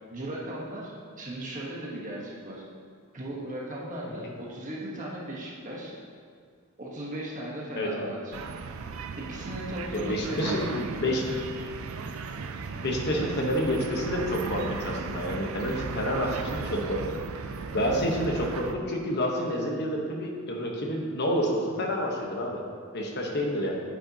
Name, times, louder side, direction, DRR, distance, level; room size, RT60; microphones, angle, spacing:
voice 1, 0.1-2.6 3.1-6.0 6.8-8.4 9.2-11.4 13.1-13.6, right 1 dB, 35° right, -4 dB, 1.2 m, -37 dB
voice 2, 7.7-8.1 9.9-11.2 12.7-17.2 17.7-22.6 22.9-23.8, equal, 50° left, 0 dB, 1.1 m, -29 dB
sound 1, 8.3-18.7, right 4 dB, 70° right, 0.4 m, -36 dB
8.6 x 8.6 x 2.9 m, 2.2 s
head